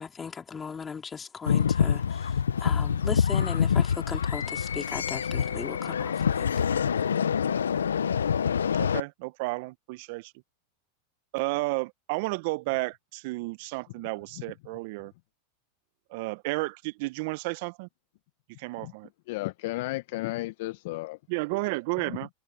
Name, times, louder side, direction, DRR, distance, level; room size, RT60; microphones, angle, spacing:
voice 1, 0.0-6.5, left 6 dB, 20° left, 3.9 m, -38 dB
sound 1, 1.5-9.0, left 7 dB, 85° left, 0.8 m, -26 dB
voice 2, 8.8-10.3 11.3-15.1 16.1-17.9 18.6-19.1 21.3-22.3, right 25 dB, 60° right, 1.3 m, -32 dB
voice 3, 19.3-21.2, left 20 dB, 60° left, 1.0 m, -33 dB
hypercardioid pair, 95°, 0 cm